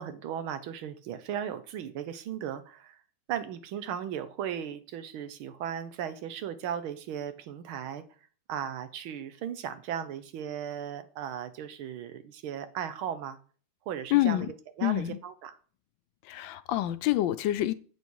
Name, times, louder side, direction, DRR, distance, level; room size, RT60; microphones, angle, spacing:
voice 1, 0.0-3.0 3.3-8.0 8.5-13.4 13.9-14.5 14.8-15.6, right 9 dB, 90° right, 1.7 m, -36 dB
voice 2, 14.1-14.5 14.8-15.2 16.2-17.7, left 14 dB, 75° left, 1.2 m, -27 dB
8.2 x 6.2 x 4.6 m
omnidirectional pair, 2.2 m